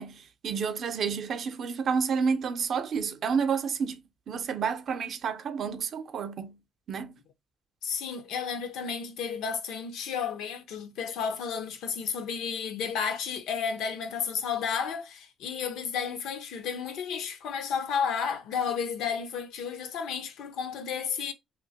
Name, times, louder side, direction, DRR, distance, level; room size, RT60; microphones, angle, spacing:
voice 1, 0.0-4.0 4.3-6.6 6.9-7.2, right 6 dB, 60° right, 0.5 m, -30 dB
voice 2, 7.8-21.3, left 6 dB, 90° left, 0.6 m, -32 dB
2.9 x 2.1 x 3.9 m
cardioid pair, 90°, 0 cm